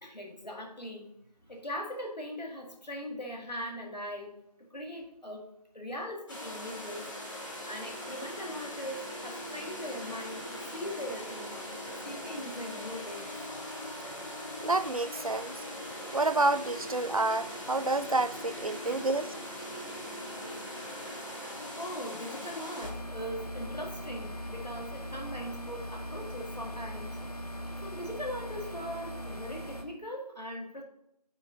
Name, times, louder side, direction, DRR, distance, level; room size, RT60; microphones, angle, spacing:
voice 1, 0.0-1.1 1.5-4.3 4.6-5.5 5.7-7.1 7.7-11.7 12.0-13.4 18.7-19.0 21.8-27.1 27.8-30.8, equal, 80° left, 2.1 m, -40 dB
sound 1, 6.3-22.9, left 1 dB, 45° left, 2.6 m, -40 dB
voice 2, 14.6-15.5 16.1-19.3, right 2 dB, 55° right, 0.4 m, -29 dB
sound 2, 22.8-29.8, equal, 65° left, 1.3 m, -40 dB
9.0 x 4.2 x 5.1 m
figure-of-eight pair, 170°, 21 cm